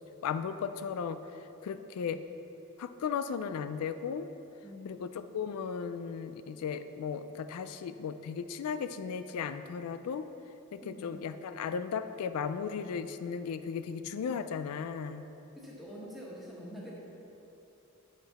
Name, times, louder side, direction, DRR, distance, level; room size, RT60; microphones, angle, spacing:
voice 1, 0.2-1.2 1.6-2.2 2.8-4.3 4.8-10.3 10.7-15.3, left 6 dB, 85° left, 11 dB, 0.3 m, -36 dB
voice 2, 10.8-11.2 15.6-17.0, equal, ahead, -6 dB, 1.3 m, -45 dB
9.6 x 5.9 x 4.1 m, 2.9 s
head